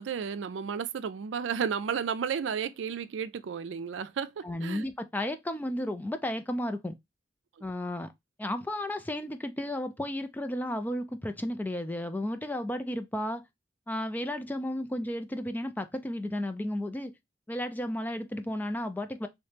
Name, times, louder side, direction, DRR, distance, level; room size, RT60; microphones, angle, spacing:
voice 1, 0.0-4.9, right 7 dB, 80° right, 0.4 m, -33 dB
voice 2, 4.4-7.0 7.6-8.1 8.4-13.4 13.9-17.1 17.5-19.3, left 1 dB, 10° left, 0.3 m, -33 dB
3.1 x 2.9 x 3.2 m
head